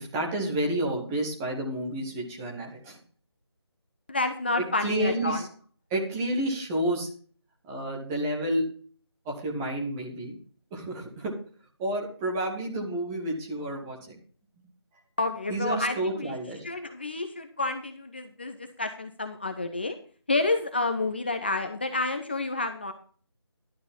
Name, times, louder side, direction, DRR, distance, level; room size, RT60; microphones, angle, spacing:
voice 1, 0.0-3.0 4.6-5.5 5.9-7.1 7.7-8.6 9.2-10.4 10.7-11.3 11.8-14.2 15.5-16.6, right 1 dB, 5° right, -1 dB, 0.9 m, -30 dB
voice 2, 4.1-5.4 15.2-16.3 16.6-20.0 20.3-22.9, left 2 dB, 25° left, 8 dB, 0.7 m, -29 dB
11.5 x 6.8 x 5.3 m, 0.43 s
figure-of-eight pair, 160°, 14 cm